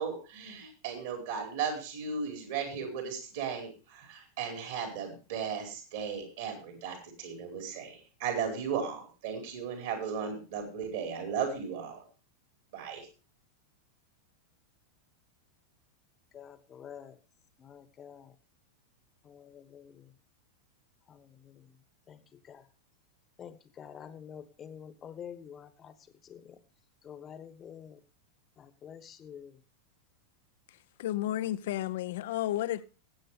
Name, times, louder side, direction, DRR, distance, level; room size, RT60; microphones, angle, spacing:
voice 1, 0.0-12.0 12.7-13.1, right 6 dB, 55° right, 4.7 m, -36 dB
voice 2, 16.3-17.2 17.6-18.3 19.2-20.1 21.1-21.7 22.1-22.2 22.5-22.6 23.4-25.9 26.2-26.6 27.0-28.0 28.6-29.6, left 8 dB, 25° left, 1.2 m, -48 dB
voice 3, 31.0-32.9, left 13 dB, 55° left, 0.6 m, -32 dB
19.5 x 8.6 x 3.3 m
figure-of-eight pair, 90°, 0 cm